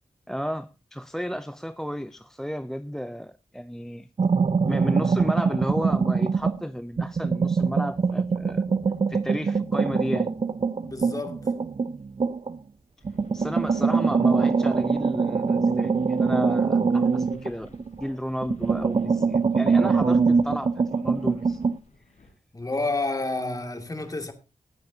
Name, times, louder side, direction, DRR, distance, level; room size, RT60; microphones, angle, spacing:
voice 1, 0.3-4.1 4.7-8.6 9.1-10.3 13.3-17.7 18.0-21.6, equal, 5° left, 0.5 m, -33 dB
sound 1, 4.2-6.6 7.0-12.6 13.1-18.1 18.4-21.8, right 5 dB, 45° right, 0.6 m, -23 dB
voice 2, 10.8-11.4 22.5-24.3, left 2 dB, 30° left, 2.3 m, -29 dB
sound 2, 13.0-22.3, left 2 dB, 75° left, 6.2 m, -54 dB
18.5 x 10.0 x 2.8 m
wide cardioid pair, 100°, 13 cm